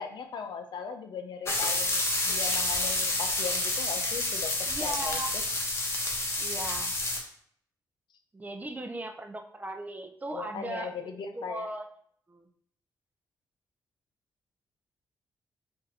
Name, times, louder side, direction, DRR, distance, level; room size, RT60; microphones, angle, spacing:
voice 1, 0.0-5.4 10.3-11.7, left 6 dB, 75° left, 6 dB, 0.6 m, -39 dB
sound 1, 1.4-7.2, left 2 dB, 35° left, 1.0 m, -29 dB
voice 2, 4.7-5.3 6.4-6.9 8.3-11.8 12.3-12.5, right 1 dB, 20° right, 6 dB, 0.6 m, -38 dB
4.0 x 2.6 x 4.1 m, 0.64 s
cardioid pair, 80°, 8 cm